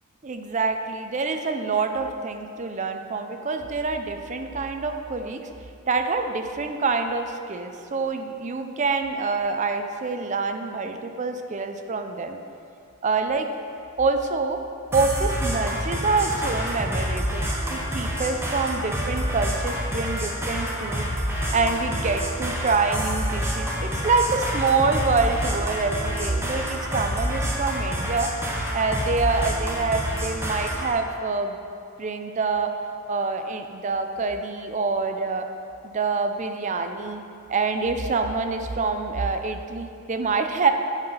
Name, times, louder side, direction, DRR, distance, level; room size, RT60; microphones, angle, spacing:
voice 1, 0.2-5.5 5.8-12.4 13.0-13.5 14.0-14.6 14.9-21.1 21.5-28.3 28.7-31.6 32.0-32.7 33.1-35.5 35.8-37.2 37.5-40.7, right 4 dB, 35° right, 6 dB, 0.4 m, -26 dB
sound 1, 14.9-30.9, equal, 10° right, 0.9 m, -28 dB
8.0 x 5.7 x 5.3 m, 2.5 s
head